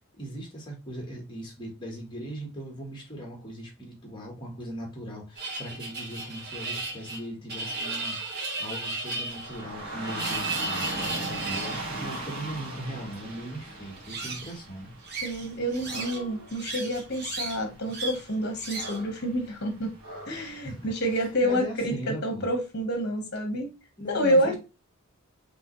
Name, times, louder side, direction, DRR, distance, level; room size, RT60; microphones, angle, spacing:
voice 1, 0.2-14.9 20.6-20.9 21.4-22.5 24.0-24.6, right 1 dB, 20° left, 1.5 m, -39 dB
sound 1, 5.4-11.8 14.0-14.6 15.0-16.2 16.5-17.6 17.9-18.2 18.6-19.0, right 3 dB, 45° right, 1.5 m, -35 dB
Dog / Rain, 9.3-21.4, right 2 dB, 85° right, 1.6 m, -39 dB
voice 2, 15.2-19.9 20.3-23.7 24.1-24.5, equal, 50° left, 1.3 m, -28 dB
5.3 x 3.1 x 3.1 m
head